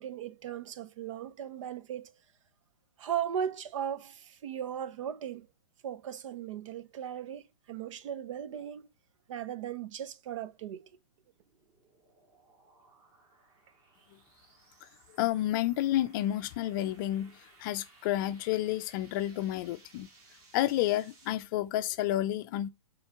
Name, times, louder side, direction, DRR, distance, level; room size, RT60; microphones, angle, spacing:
voice 1, 0.0-2.1 3.0-5.5 5.8-8.9 9.3-10.9, right 9 dB, 55° right, 0.8 m, -37 dB
sound 1, 10.9-21.3, right 3 dB, 30° right, 3.5 m, -61 dB
voice 2, 15.2-17.3 17.6-20.1 20.5-22.7, left 14 dB, 35° left, 0.5 m, -30 dB
7.8 x 3.9 x 5.8 m
hypercardioid pair, 150°, 19 cm